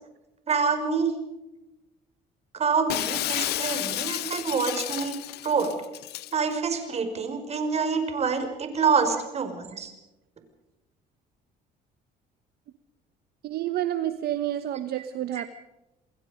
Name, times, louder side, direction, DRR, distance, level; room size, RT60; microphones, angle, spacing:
voice 1, 0.5-1.1 2.5-5.2 5.4-5.7 6.3-9.9, right 5 dB, 40° right, 7 dB, 5.4 m, -26 dB
Shatter, 2.9-6.3, left 16 dB, 75° left, 0.8 m, -31 dB
voice 2, 13.4-15.5, right 12 dB, 70° right, 10 dB, 1.2 m, -29 dB
28.0 x 21.5 x 5.2 m, 0.97 s
cardioid pair, 110°, 17 cm